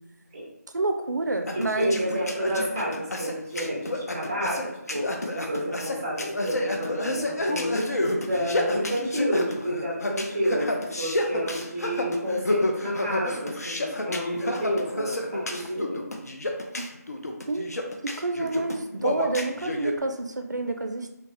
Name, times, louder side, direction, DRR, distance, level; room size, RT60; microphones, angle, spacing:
voice 1, 0.7-2.0 12.2-12.4 16.7-16.8 17.5-17.7 18.0-21.1, right 2 dB, 85° right, 6 dB, 0.4 m, -28 dB
sound 1, 1.5-19.9, left 1 dB, 60° left, 0.4 m, -30 dB
voice 2, 1.8-7.7 8.2-16.1, equal, 10° right, -5 dB, 0.4 m, -29 dB
2.8 x 2.1 x 2.9 m, 0.85 s
figure-of-eight pair, 165°, 9 cm